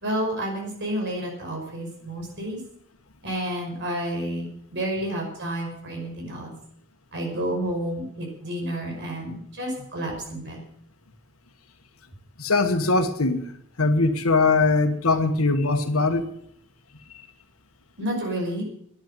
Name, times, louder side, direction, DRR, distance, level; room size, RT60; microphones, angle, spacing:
voice 1, 0.0-2.6 3.2-6.5 7.1-10.6 18.0-18.6, right 1 dB, 60° right, 0 dB, 5.8 m, -30 dB
voice 2, 12.4-13.4 13.8-16.3, left 3 dB, 85° left, 7 dB, 1.3 m, -21 dB
11.0 x 10.0 x 9.0 m, 0.69 s
head